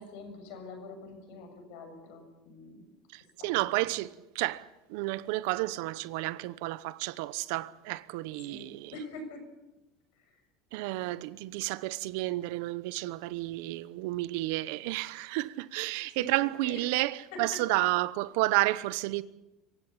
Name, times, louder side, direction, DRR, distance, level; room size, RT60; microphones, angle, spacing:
voice 1, 0.0-2.9 3.4-3.9 8.4-9.4 10.1-10.4 15.5-15.7 16.1-17.1 17.3-17.8 18.4-18.7, left 2 dB, 75° left, 7.0 m, -45 dB
voice 2, 3.1-8.9 10.7-19.2, right 19 dB, 75° right, 0.9 m, -31 dB
25.5 x 15.5 x 8.5 m
supercardioid pair, 135°, 0 cm